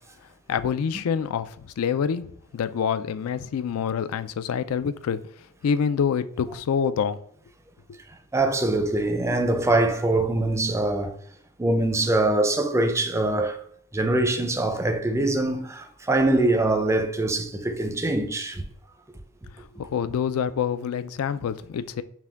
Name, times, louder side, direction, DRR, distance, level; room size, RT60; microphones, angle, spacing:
voice 1, 0.5-5.2 5.6-7.2 19.8-22.0, left 7 dB, 80° left, 0.4 m, -26 dB
voice 2, 8.3-11.1 11.6-13.6 13.9-18.6, right 2 dB, 15° right, 0.4 m, -23 dB
5.9 x 2.2 x 3.4 m
head